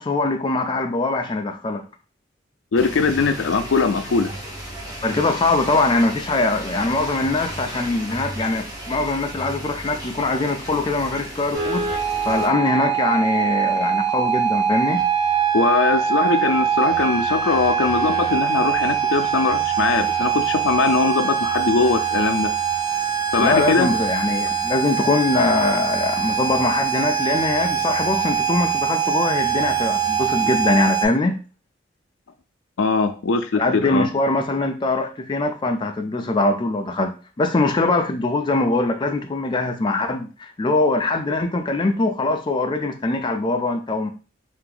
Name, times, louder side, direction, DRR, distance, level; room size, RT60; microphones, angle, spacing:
voice 1, 0.0-1.8 5.0-15.1 23.4-31.4 33.5-44.1, left 2 dB, 25° left, 0.4 m, -22 dB
voice 2, 2.7-4.3 15.5-22.5 23.3-23.9 32.8-34.1, left 4 dB, 85° left, 0.4 m, -21 dB
sound 1, 2.7-12.5, equal, 20° right, 0.9 m, -35 dB
sound 2, 11.5-31.1, right 8 dB, 40° right, 1.5 m, -23 dB
2.8 x 2.5 x 3.8 m
head